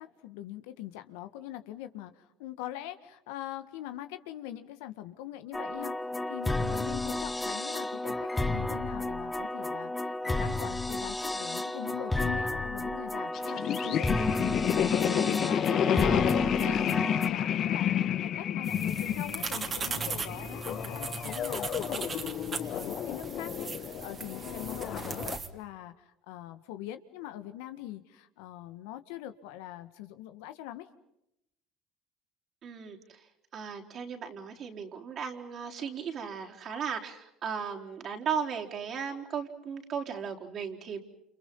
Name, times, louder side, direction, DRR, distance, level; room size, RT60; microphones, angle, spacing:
voice 1, 0.0-16.4 16.6-30.9, left 13 dB, 80° left, 10 dB, 1.7 m, -43 dB
sound 1, 5.5-17.3, left 2 dB, 15° left, 1.6 m, -31 dB
sound 2, 13.3-25.4, left 10 dB, 55° left, 1.2 m, -31 dB
sound 3, 18.6-25.5, right 5 dB, 35° right, 2.8 m, -38 dB
voice 2, 32.6-33.3 33.5-41.0, right 7 dB, 50° right, 1 dB, 4.2 m, -36 dB
29.5 x 28.5 x 5.5 m, 0.82 s
supercardioid pair, 80°, 0 cm